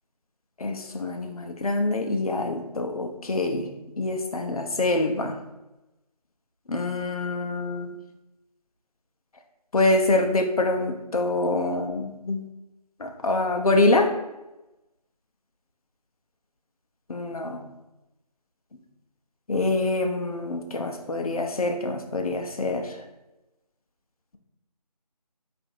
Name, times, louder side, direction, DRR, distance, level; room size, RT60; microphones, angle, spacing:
voice 1, 0.6-3.7 4.0-5.4 6.7-7.9 9.7-12.4 13.0-14.1 17.1-17.6 19.5-22.9, left 2 dB, 60° left, 4 dB, 0.6 m, -25 dB
3.5 x 2.6 x 4.3 m, 1.0 s
figure-of-eight pair, 170°, 21 cm